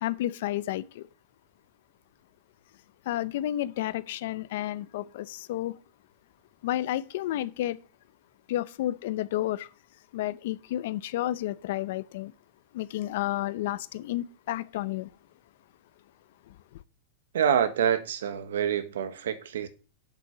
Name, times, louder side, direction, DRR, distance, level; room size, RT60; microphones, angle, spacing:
voice 1, 0.0-1.1 3.1-5.8 6.6-7.8 8.5-9.7 10.1-12.3 12.7-15.1 16.5-16.6, left 14 dB, 60° left, 0.7 m, -31 dB
voice 2, 17.3-19.7, right 8 dB, 90° right, 1.3 m, -26 dB
8.4 x 7.0 x 5.8 m
supercardioid pair, 160°, 0 cm